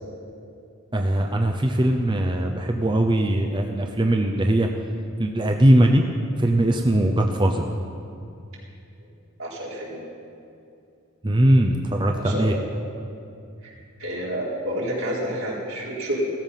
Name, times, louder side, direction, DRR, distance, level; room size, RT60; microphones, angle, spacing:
voice 1, 0.9-4.7 5.2-6.0 6.4-7.6 11.2-12.5, right 1 dB, 20° right, 3 dB, 0.7 m, -20 dB
voice 2, 9.4-10.1 12.1-12.5 14.0-16.2, equal, 75° right, -5 dB, 4.7 m, -29 dB
16.0 x 14.0 x 5.7 m, 2.6 s
head